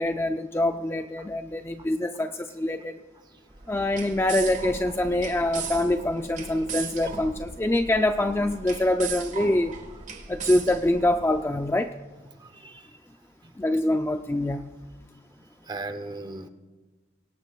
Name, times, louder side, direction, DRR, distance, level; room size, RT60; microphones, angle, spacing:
voice 1, 0.0-3.0 3.7-9.8 10.3-11.9 13.6-14.6, left 1 dB, 10° left, 6 dB, 0.4 m, -25 dB
sound 1, 3.5-11.6, right 5 dB, 35° right, 1.5 m, -38 dB
voice 2, 12.4-12.8 13.4-13.5 15.7-16.5, right 2 dB, 20° right, 9 dB, 0.7 m, -37 dB
24.0 x 18.0 x 2.4 m, 1.3 s
head